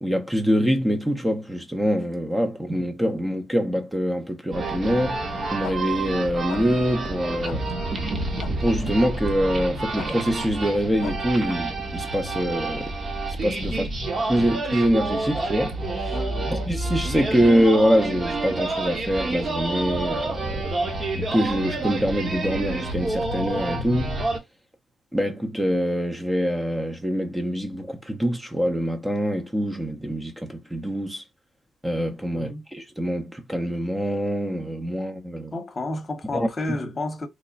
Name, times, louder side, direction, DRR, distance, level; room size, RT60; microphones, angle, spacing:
voice 1, 0.0-5.2 5.5-7.7 8.6-12.9 13.4-13.9 14.3-16.1 16.5-20.7 21.1-24.2 25.1-31.2 31.8-35.5 36.3-36.5, equal, 10° right, 0.7 m, -24 dB
sound 1, 4.5-24.4, right 2 dB, 40° right, 1.0 m, -29 dB
sound 2, 5.6-5.8 6.5-6.6 7.4-7.6 8.4-8.5 9.9-10.1 11.0-11.1, left 10 dB, 85° left, 0.4 m, -36 dB
voice 2, 16.1-16.6 32.3-32.6 35.5-37.3, left 2 dB, 35° left, 0.9 m, -31 dB
3.1 x 2.1 x 3.9 m
supercardioid pair, 70°, 0 cm